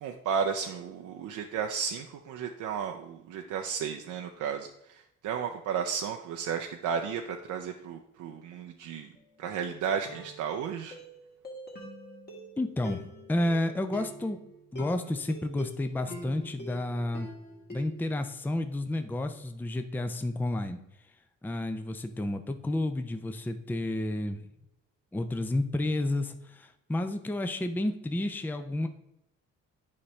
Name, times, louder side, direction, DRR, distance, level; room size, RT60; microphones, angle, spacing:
voice 1, 0.0-9.1 9.4-11.0, right 7 dB, 80° right, 3 dB, 0.6 m, -33 dB
sound 1, 9.1-9.4 10.0-18.1, equal, 35° left, 1.8 m, -45 dB
voice 2, 12.6-14.4 14.7-17.3 17.7-20.8 21.4-24.4 25.1-28.9, left 1 dB, 5° left, 8 dB, 0.5 m, -31 dB
8.6 x 5.0 x 3.2 m, 0.83 s
cardioid pair, 90°, 30 cm